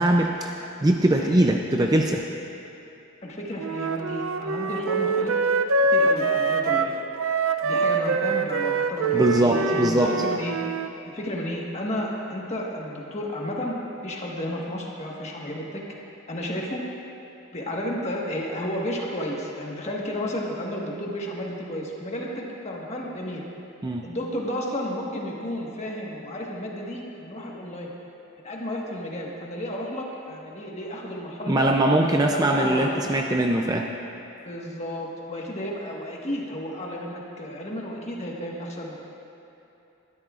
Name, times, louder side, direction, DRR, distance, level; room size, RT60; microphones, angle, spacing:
voice 1, 0.0-2.2 9.1-10.1 23.8-24.0 31.5-33.9, right 1 dB, 15° right, 2 dB, 0.4 m, -21 dB
voice 2, 3.2-5.5 5.9-6.9 7.6-10.6 11.0-13.8 14.0-15.8 16.3-16.8 17.5-23.4 24.0-27.9 28.4-31.7 32.0-33.0 34.4-38.9, left 1 dB, 30° left, -2 dB, 1.5 m, -32 dB
Wind instrument woodwind instrument, 3.6-10.9, right 3 dB, 70° right, 0.5 m, -24 dB
20.5 x 13.0 x 2.5 m, 3.0 s
head